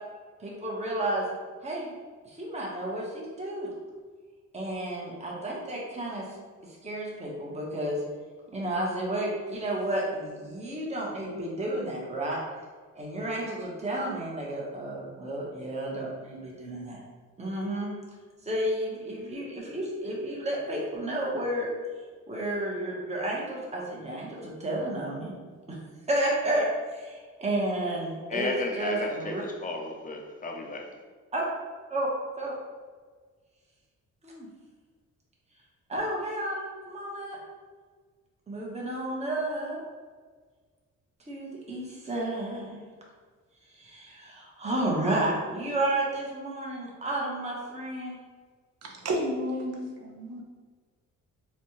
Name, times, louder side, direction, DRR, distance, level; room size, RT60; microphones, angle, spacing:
voice 1, 0.4-1.2 1.6-2.0 2.2-3.7 4.5-6.3 6.8-8.0 8.5-12.4 13.0-17.0 17.4-17.9 18.5-21.7 22.3-25.3 25.7-25.8 26.1-29.4 31.3-31.4 31.9-32.1 32.4-32.5 34.2-34.5 35.9-37.4 38.5-39.8 41.3-42.8 43.7-48.1, right 1 dB, 20° right, -4 dB, 1.0 m, -31 dB
voice 2, 28.3-30.9, left 3 dB, 25° left, 2 dB, 0.6 m, -33 dB
voice 3, 48.8-50.4, equal, 55° right, 0 dB, 0.8 m, -32 dB
4.2 x 2.3 x 3.0 m, 1.5 s
cardioid pair, 90°, 30 cm